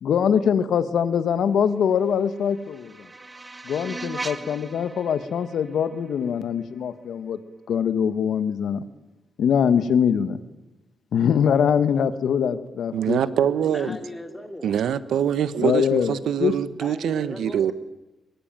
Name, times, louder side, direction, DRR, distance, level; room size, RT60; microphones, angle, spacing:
voice 1, 0.0-3.1 3.6-7.4 7.7-8.8 9.4-10.4 11.1-13.2 13.9-14.0 15.6-16.1 16.4-16.5, left 7 dB, 75° left, 1.5 m, -23 dB
sound 1, 1.9-6.9, right 2 dB, 20° right, 1.7 m, -39 dB
voice 2, 12.9-13.9 14.6-17.7, right 9 dB, 85° right, 1.2 m, -24 dB
voice 3, 13.7-14.8 16.8-17.7, left 1 dB, 10° left, 3.0 m, -38 dB
23.5 x 22.0 x 9.1 m
wide cardioid pair, 130°, 0 cm